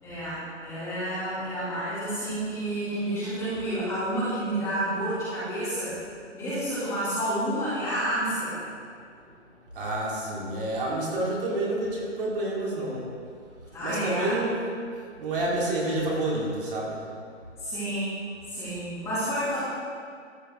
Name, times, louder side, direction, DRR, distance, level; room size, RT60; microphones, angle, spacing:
voice 1, 0.0-5.9 6.3-8.6 13.7-14.4 15.4-15.7 17.6-18.1 18.5-19.6, right 1 dB, 10° left, -12 dB, 2.2 m, -30 dB
voice 2, 9.7-13.0 13.8-14.6 15.2-17.0, right 1 dB, 45° right, -5 dB, 3.0 m, -29 dB
13.5 x 9.0 x 3.4 m, 2.2 s
hypercardioid pair, 165°, 37 cm